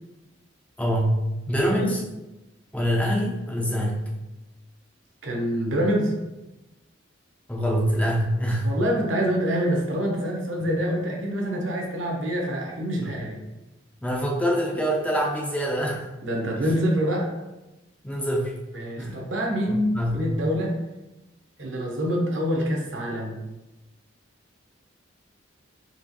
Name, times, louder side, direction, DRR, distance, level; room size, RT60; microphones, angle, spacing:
voice 1, 0.8-2.0 2.7-4.0 7.5-8.7 13.0-13.1 14.0-16.1 16.6-16.7 18.0-18.5 19.0-19.2 19.7-20.3, equal, 5° left, -3 dB, 0.5 m, -25 dB
voice 2, 5.2-6.1 8.6-13.4 16.2-17.3 18.7-20.7 21.6-23.4, equal, 70° right, -1 dB, 1.0 m, -26 dB
4.3 x 3.0 x 3.0 m, 1.0 s
head